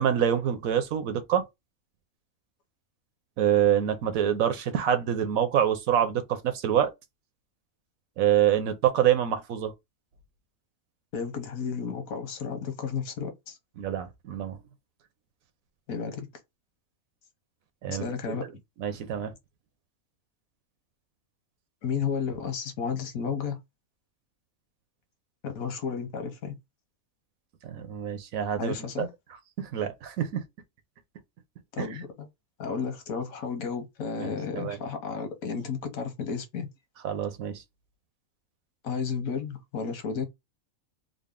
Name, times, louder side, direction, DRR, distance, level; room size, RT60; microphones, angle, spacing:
voice 1, 0.0-1.4 3.4-6.9 8.2-9.7 13.8-14.6 17.8-18.1 18.8-19.3 27.6-29.1 29.6-30.4 31.8-31.9 34.2-34.8 37.0-37.6, right 10 dB, 80° right, 1.2 m, -26 dB
voice 2, 11.1-13.6 15.9-16.3 17.9-18.4 21.8-23.6 25.4-26.6 28.6-29.1 31.7-32.3 32.6-36.7 38.8-40.3, left 6 dB, 90° left, 1.4 m, -32 dB
3.9 x 2.1 x 3.6 m
omnidirectional pair, 1.4 m